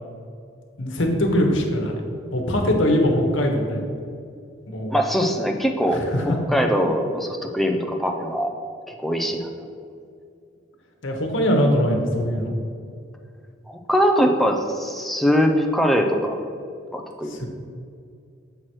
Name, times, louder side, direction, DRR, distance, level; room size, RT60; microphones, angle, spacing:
voice 1, 0.8-2.0 2.3-3.8 4.7-5.0 5.9-6.4 11.0-12.5 17.3-17.5, equal, 75° left, 2 dB, 1.2 m, -21 dB
voice 2, 4.9-6.0 6.5-8.5 9.0-9.5 13.7-16.4 16.9-17.4, equal, ahead, 2 dB, 0.6 m, -22 dB
7.5 x 4.7 x 4.5 m, 2.4 s
head